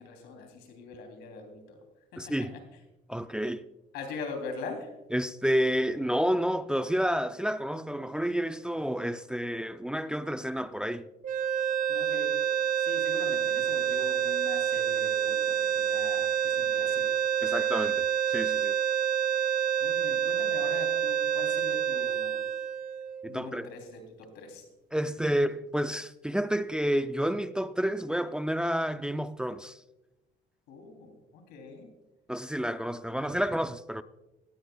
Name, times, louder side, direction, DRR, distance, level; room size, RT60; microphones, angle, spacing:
voice 1, 0.0-1.8 2.1-2.5 3.9-5.0 11.9-12.4 12.8-17.2 19.8-22.4 23.2-24.7 25.2-25.3 30.7-31.9, left 4 dB, 90° left, 3.1 m, -42 dB
voice 2, 2.2-2.5 3.1-3.7 5.1-11.1 17.4-18.8 23.2-23.7 24.9-29.8 32.3-34.0, equal, 5° right, 0.4 m, -30 dB
sound 1, 11.2-23.5, right 9 dB, 55° right, 0.8 m, -28 dB
18.0 x 13.5 x 2.3 m
cardioid pair, 110°, 17 cm